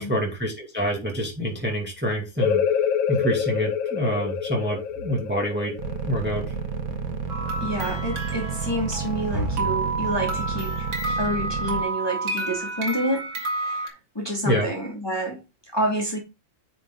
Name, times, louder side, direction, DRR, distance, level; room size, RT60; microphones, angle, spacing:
voice 1, 0.0-2.6 3.1-5.7 6.1-6.4 14.4-14.7, equal, 5° right, 2.3 m, -26 dB
sound 1, 2.4-7.8, left 8 dB, 55° left, 1.3 m, -27 dB
sound 2, 5.8-11.8, right 6 dB, 85° right, 1.9 m, -31 dB
sound 3, 7.3-13.9, right 2 dB, 65° right, 2.6 m, -30 dB
voice 2, 7.6-10.9 11.2-16.2, equal, 10° left, 2.4 m, -28 dB
9.7 x 5.1 x 3.9 m
omnidirectional pair, 2.1 m